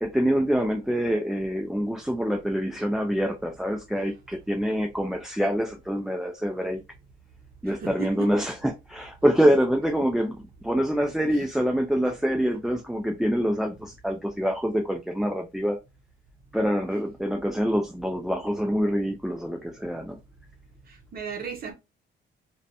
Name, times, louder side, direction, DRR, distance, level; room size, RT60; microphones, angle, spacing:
voice 1, 0.0-6.8 7.6-15.8 16.5-20.2, equal, ahead, 0.4 m, -25 dB
voice 2, 7.6-8.3 12.5-12.6 20.9-21.7, right 6 dB, 50° right, 0.7 m, -36 dB
2.5 x 2.2 x 2.6 m
cardioid pair, 90°, 20 cm